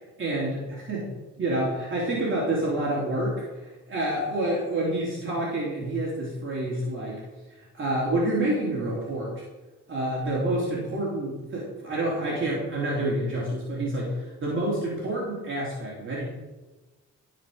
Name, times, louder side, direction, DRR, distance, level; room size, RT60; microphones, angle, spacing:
voice 1, 0.2-1.1 1.4-7.2 7.7-9.3 9.9-16.2, right 1 dB, 40° right, -5 dB, 3.1 m, -28 dB
14.0 x 5.2 x 5.1 m, 1.2 s
cardioid pair, 90°, 30 cm